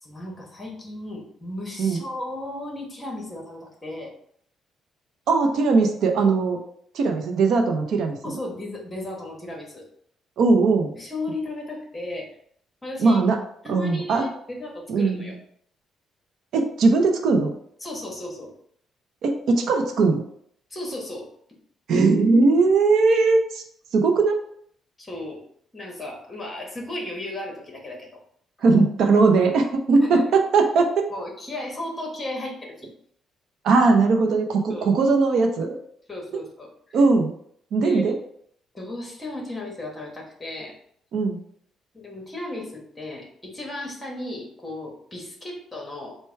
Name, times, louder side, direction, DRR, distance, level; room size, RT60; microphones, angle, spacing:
voice 1, 0.0-4.1 8.2-9.8 11.0-12.3 12.8-13.2 13.6-15.4 17.8-18.5 20.7-21.3 23.1-23.2 25.0-25.4 25.7-28.1 30.0-30.3 31.1-32.9 34.7-34.9 36.1-37.0 37.8-38.0 38.7-40.7 41.9-46.2, left 1 dB, 15° left, -1 dB, 1.2 m, -35 dB
voice 2, 5.3-6.6 6.9-8.4 10.4-10.9 13.0-13.4 13.7-14.3 14.9-15.4 16.5-17.5 19.2-20.2 21.9-23.6 23.9-24.4 28.6-30.9 33.6-35.8 36.9-37.3 37.7-38.1 41.1-41.4, right 3 dB, 65° right, 4 dB, 0.6 m, -19 dB
4.5 x 2.2 x 4.5 m, 0.65 s
cardioid pair, 130°, 0 cm